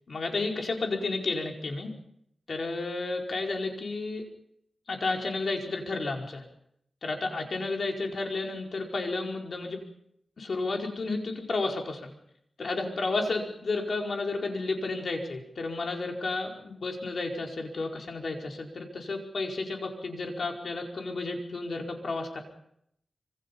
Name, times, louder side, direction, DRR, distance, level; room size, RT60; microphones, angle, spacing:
voice 1, 0.1-1.9 2.5-4.2 4.9-6.4 7.0-9.8 10.4-12.1 12.6-22.4, left 3 dB, 65° left, 1 dB, 4.9 m, -32 dB
26.0 x 25.5 x 5.5 m, 0.73 s
wide cardioid pair, 100°, 0 cm